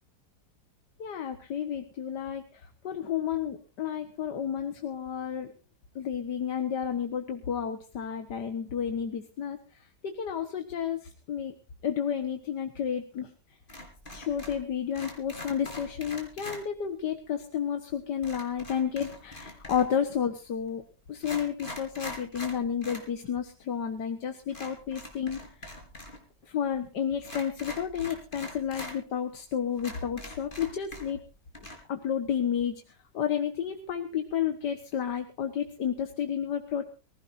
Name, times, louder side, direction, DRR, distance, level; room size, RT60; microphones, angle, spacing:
voice 1, 1.0-5.5 6.0-11.5 11.8-13.3 14.1-20.8 21.1-25.8 26.5-31.2 31.9-36.8, left 8 dB, 80° left, 7 dB, 2.0 m, -31 dB
sound 1, 13.7-14.6 14.9-16.6 18.2-20.0 20.7-20.8 21.1-23.1 23.4-23.5 24.5-26.2 26.4-26.5 27.2-28.9 29.4-29.5 29.8-31.3 31.5-31.7, left 1 dB, 30° left, 4.8 m, -42 dB
23.5 x 16.0 x 2.7 m, 0.34 s
omnidirectional pair, 1.8 m